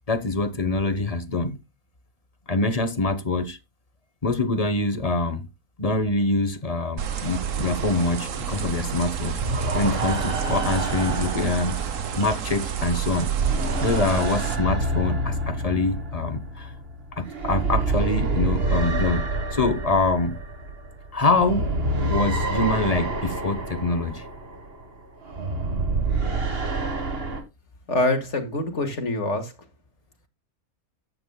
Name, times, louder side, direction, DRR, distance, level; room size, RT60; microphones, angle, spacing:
voice 1, 0.1-1.6 2.5-3.6 4.2-5.5 5.8-9.4 9.7-11.8 12.2-13.3 13.8-16.7 17.1-19.2 19.5-20.4 21.1-21.7 22.0-24.2, left 2 dB, 30° left, 1.0 m, -25 dB
sound 1, 7.0-14.6, right 8 dB, 65° right, 1.3 m, -29 dB
sound 2, 7.5-12.9 13.2-27.4, right 2 dB, 40° right, 2.0 m, -28 dB
voice 2, 27.9-29.5, left 2 dB, 50° left, 2.5 m, -25 dB
13.5 x 9.2 x 2.3 m
omnidirectional pair, 1.5 m